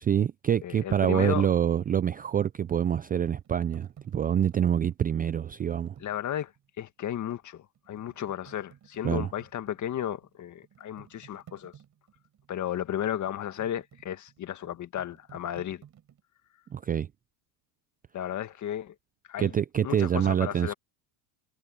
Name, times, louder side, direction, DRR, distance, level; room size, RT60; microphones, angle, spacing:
voice 1, 0.0-5.9 9.0-9.3 16.7-17.1 19.4-20.7, right 9 dB, 20° right, 0.5 m, -26 dB
voice 2, 0.6-1.5 6.0-6.5 6.8-11.7 12.5-15.8 18.1-18.9 19.3-19.6 19.8-20.7, left 10 dB, 35° left, 1.8 m, -34 dB
sound 1, 2.7-6.7 7.2-7.3 7.7-16.2, right 9 dB, 35° right, 6.5 m, -56 dB
supercardioid pair, 115°, 50 cm